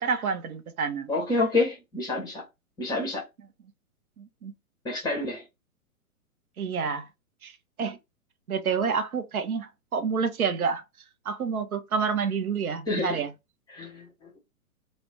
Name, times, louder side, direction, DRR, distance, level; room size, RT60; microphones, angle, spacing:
voice 1, 0.0-1.1 4.2-4.5 6.6-7.1 7.4-8.0 8.5-10.8 11.2-13.3, right 6 dB, 75° right, 0.6 m, -28 dB
voice 2, 1.1-2.4 2.8-3.2 4.8-5.4 12.9-13.2 13.7-14.3, left 2 dB, 10° left, 0.7 m, -28 dB
2.4 x 2.1 x 3.3 m
figure-of-eight pair, 115°, 43 cm